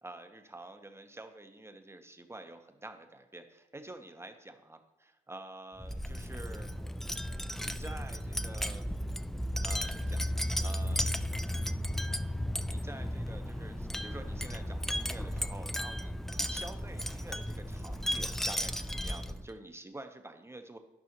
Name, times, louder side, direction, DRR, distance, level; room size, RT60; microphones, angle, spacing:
voice 1, 0.0-6.7 7.5-8.9 9.6-10.3 10.6-11.2 12.7-20.8, right 2 dB, 15° right, 7 dB, 0.9 m, -48 dB
Wind chime, 5.8-19.5, equal, ahead, 0.3 m, -34 dB
12.5 x 5.5 x 3.0 m, 1.0 s
hypercardioid pair, 55°, 18 cm